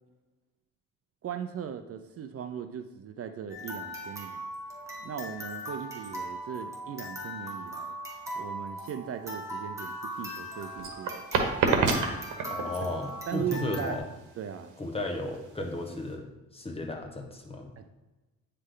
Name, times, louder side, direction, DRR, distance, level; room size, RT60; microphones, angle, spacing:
voice 1, 1.2-4.4 5.0-8.0 8.4-11.8 13.3-14.0 14.4-14.7 17.8-17.9, right 8 dB, 50° right, 8 dB, 0.5 m, -38 dB
sound 1, 3.5-14.0, equal, 10° right, 1.7 m, -39 dB
sound 2, 10.1-16.1, right 4 dB, 75° right, 1.1 m, -29 dB
voice 2, 12.5-14.1 14.8-17.7, left 2 dB, 20° left, 2 dB, 1.1 m, -35 dB
9.3 x 3.3 x 3.8 m, 1.1 s
cardioid pair, 90°, 30 cm